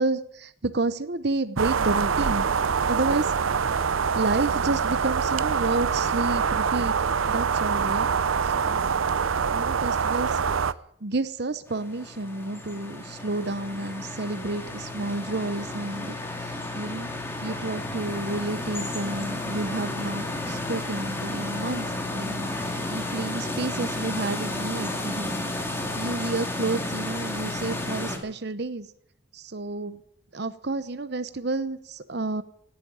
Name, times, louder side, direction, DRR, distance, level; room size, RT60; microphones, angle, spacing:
voice 1, 0.0-2.5 2.9-3.3 4.1-8.1 8.4-9.0 9.5-10.4 11.0-17.1 17.4-25.5 26.0-28.9 29.3-30.0 30.3-32.4, right 2 dB, 55° right, 12 dB, 0.9 m, -30 dB
sound 1, 1.6-10.7, right 6 dB, 80° right, 0.6 m, -25 dB
sound 2, 11.7-28.2, left 2 dB, 10° left, 2.2 m, -32 dB
17.5 x 8.7 x 9.3 m, 0.69 s
head